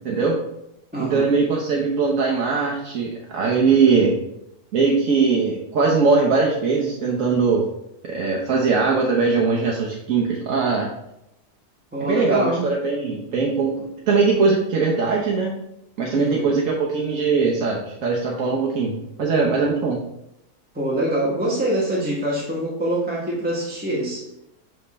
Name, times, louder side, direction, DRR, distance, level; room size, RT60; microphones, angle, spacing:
voice 1, 0.0-0.4 1.0-4.1 4.7-7.6 8.0-10.9 12.0-15.5 16.0-18.9 19.2-20.0, right 4 dB, 60° right, -2 dB, 1.1 m, -20 dB
voice 2, 0.9-1.3 11.9-12.7 16.1-16.6 20.7-24.2, right 1 dB, 5° right, -5 dB, 1.0 m, -24 dB
7.0 x 3.4 x 4.1 m, 0.83 s
omnidirectional pair, 1.7 m